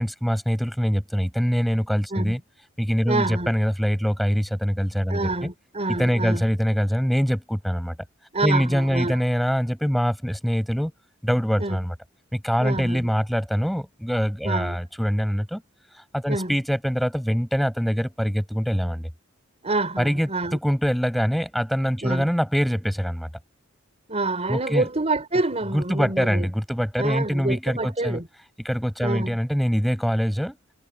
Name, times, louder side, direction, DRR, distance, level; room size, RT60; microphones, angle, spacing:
voice 1, 0.0-2.4 2.8-5.5 5.9-8.0 8.4-10.9 11.2-11.9 12.3-15.6 16.1-19.1 20.0-23.3 24.5-24.9 25.7-28.2 28.6-30.6, equal, ahead, 7.2 m, -24 dB
voice 2, 3.1-3.5 5.1-6.4 8.3-9.2 11.6-11.8 12.6-13.1 14.4-14.8 16.3-16.6 19.6-20.6 22.0-22.2 24.1-26.5 27.0-28.3 29.0-29.4, right 2 dB, 30° right, 4.5 m, -27 dB
head